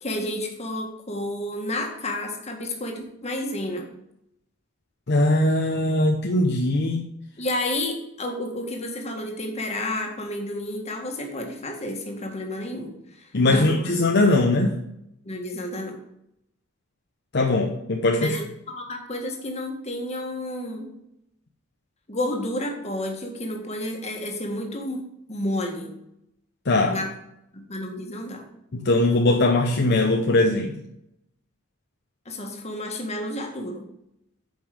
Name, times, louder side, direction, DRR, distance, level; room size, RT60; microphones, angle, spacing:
voice 1, 0.0-3.9 7.4-13.8 15.3-16.0 18.2-20.9 22.1-26.0 26.9-27.1 27.5-28.4 32.3-33.9, left 1 dB, 35° left, 2 dB, 1.7 m, -31 dB
voice 2, 5.1-7.0 13.3-14.8 17.3-18.4 26.7-27.0 28.7-30.8, left 2 dB, 60° left, 2 dB, 0.8 m, -20 dB
9.0 x 5.4 x 5.0 m, 0.82 s
head